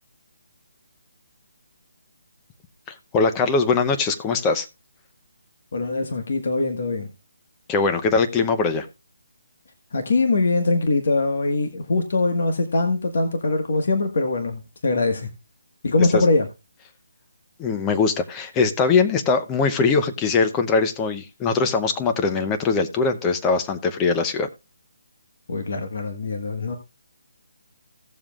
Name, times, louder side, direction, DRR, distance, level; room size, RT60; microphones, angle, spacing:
voice 1, 2.9-4.7 7.7-8.9 16.1-16.2 17.6-24.5, left 4 dB, 10° left, 0.7 m, -21 dB
voice 2, 5.7-7.1 9.9-15.3 15.8-16.5 25.5-26.7, left 3 dB, 50° left, 1.5 m, -22 dB
17.0 x 7.2 x 2.4 m
hypercardioid pair, 170°, 0 cm